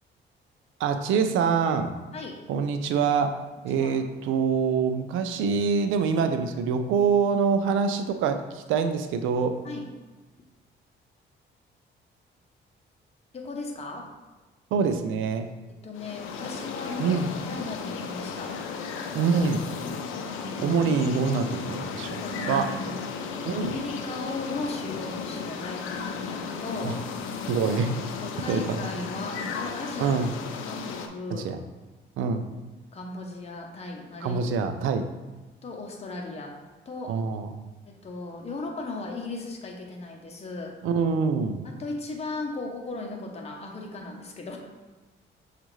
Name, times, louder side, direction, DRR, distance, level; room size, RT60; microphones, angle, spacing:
voice 1, 0.8-1.9 2.5-9.6 14.7-15.5 17.0-17.3 19.1-19.7 20.6-22.2 22.5-22.7 23.5-23.7 26.8-27.0 27.5-28.0 28.5-28.9 30.0-30.3 31.3-31.6 32.2-32.5 34.2-35.1 37.1-37.7 40.8-41.6, right 5 dB, 85° right, 8 dB, 0.4 m, -25 dB
voice 2, 13.3-14.1 15.8-18.6 20.1-20.8 22.2-22.9 23.5-27.0 28.2-30.3 30.6-31.5 32.9-34.4 35.6-36.5 36.9-37.2 38.0-40.8 41.6-44.6, left 2 dB, 30° left, 0 dB, 0.8 m, -36 dB
sound 1, 15.9-31.1, left 5 dB, 90° left, 0.5 m, -35 dB
6.2 x 2.5 x 3.1 m, 1.2 s
cardioid pair, 90°, 20 cm